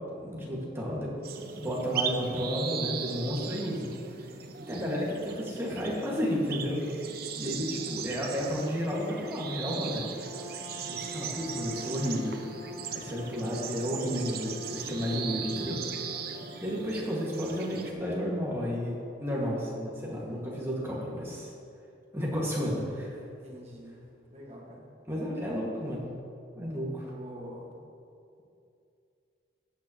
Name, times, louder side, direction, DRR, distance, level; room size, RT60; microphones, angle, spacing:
voice 1, 0.1-1.1 1.5-3.9 4.7-6.8 7.4-10.0 10.9-12.4 12.9-15.8 16.6-21.5 22.1-23.2 25.1-26.1 26.6-27.1, equal, 15° right, -5 dB, 1.7 m, -32 dB
sound 1, 1.2-17.9, right 7 dB, 50° right, 0.6 m, -39 dB
Bowed string instrument, 9.6-17.1, left 1 dB, 65° left, 1.1 m, -45 dB
voice 2, 23.4-24.0 24.3-24.9 26.8-27.8, equal, 30° right, -2 dB, 1.5 m, -46 dB
13.5 x 8.6 x 2.9 m, 2.5 s
head